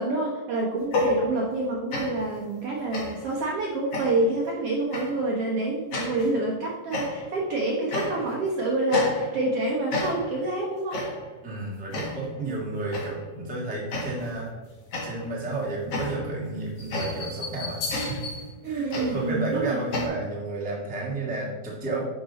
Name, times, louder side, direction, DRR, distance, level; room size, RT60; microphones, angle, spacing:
voice 1, 0.0-11.0 12.4-12.6 18.6-19.8, right 2 dB, 60° right, -2 dB, 1.6 m, -27 dB
sound 1, 0.8-1.6 1.9-2.3 2.9-3.3 3.9-4.4 4.9-5.2 5.9-6.3 6.9-7.4 7.9-8.4 8.9-9.6 9.9-10.4 10.9-11.3 11.9-12.3 12.9-13.3 13.9-14.4 14.9-20.1, left 2 dB, 50° left, 2.6 m, -31 dB
voice 2, 11.4-14.5 15.0-18.2 18.7-22.0, right 2 dB, 5° right, -4 dB, 1.0 m, -32 dB
10.0 x 5.4 x 4.1 m, 1.2 s
omnidirectional pair, 3.8 m